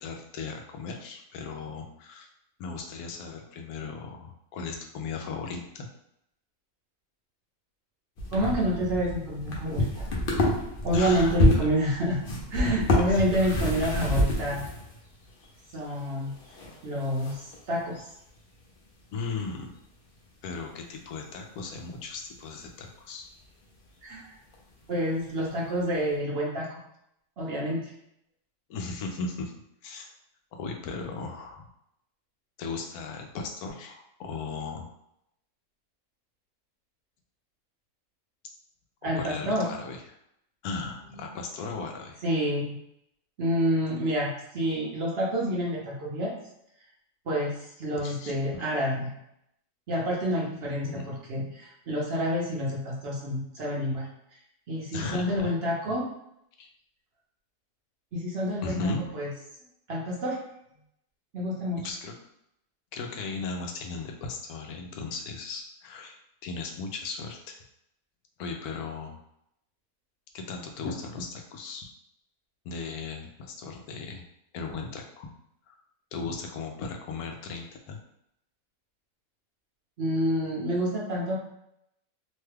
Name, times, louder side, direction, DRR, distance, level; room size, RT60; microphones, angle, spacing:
voice 1, 0.0-2.3 2.6-5.9 10.9-11.7 13.0-13.2 19.1-19.7 20.4-23.3 28.7-29.5 29.8-30.1 30.5-31.7 32.6-34.9 39.0-40.0 40.6-42.2 48.0-48.6 50.8-51.0 54.9-55.5 56.6-56.7 58.6-59.0 61.8-62.1 62.9-67.6 68.4-69.2 70.3-71.9 72.6-74.2 74.5-75.3 75.7-75.8 76.1-78.0, left 4 dB, 90° left, 3 dB, 1.1 m, -37 dB
sound 1, 8.2-15.4 15.8-17.6 17.9-18.0 21.7-21.8 21.9-22.0 24.5-24.6, left 1 dB, 55° left, 0.7 m, -28 dB
voice 2, 8.3-10.1 10.8-12.2 12.5-14.7 15.7-16.3 16.8-18.0 24.0-24.3 24.9-26.8 27.4-27.8 39.0-39.6 42.2-42.8 43.4-46.3 47.3-47.5 47.8-49.1 49.9-54.1 54.7-56.1 58.1-58.8 59.1-59.3 59.9-60.4 61.3-61.8 80.0-81.4, equal, 55° right, -4 dB, 0.8 m, -28 dB
3.0 x 2.2 x 3.2 m, 0.77 s
omnidirectional pair, 1.5 m